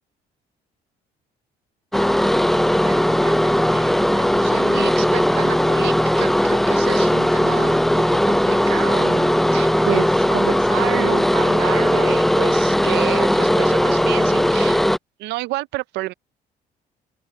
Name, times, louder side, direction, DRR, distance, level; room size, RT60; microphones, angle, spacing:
sound 1, 1.9-15.0, equal, ahead, 0.4 m, -18 dB
voice 1, 2.8-14.8 15.2-16.1, right 19 dB, 85° right, 0.5 m, -30 dB
open air
cardioid pair, 110°, 17 cm